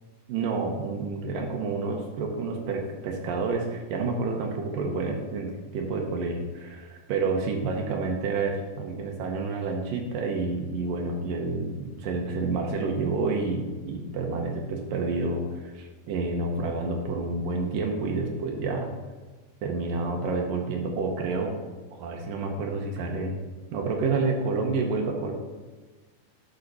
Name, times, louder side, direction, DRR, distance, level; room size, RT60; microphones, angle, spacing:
voice 1, 0.3-18.9 19.6-21.6 21.9-23.4 23.7-25.3, right 3 dB, 75° right, 2 dB, 2.5 m, -29 dB
11.5 x 5.7 x 4.1 m, 1.3 s
omnidirectional pair, 4.2 m